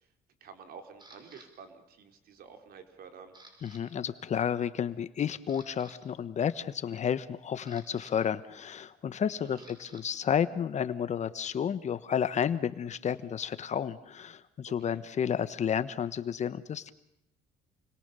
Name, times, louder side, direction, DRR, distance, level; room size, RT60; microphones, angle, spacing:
voice 1, 0.4-3.3 9.4-9.7 14.7-15.0, right 6 dB, 65° right, 5 dB, 4.0 m, -50 dB
Camera, 1.0-1.5 2.1-2.4 2.7-3.8 4.1-4.3 4.8-4.9 5.3-6.0 7.1-10.0 10.3-12.9, right 2 dB, 25° right, 6.2 m, -57 dB
voice 2, 3.6-16.9, left 8 dB, 45° left, 14 dB, 1.2 m, -31 dB
29.0 x 22.0 x 6.9 m, 0.83 s
cardioid pair, 110°, 17 cm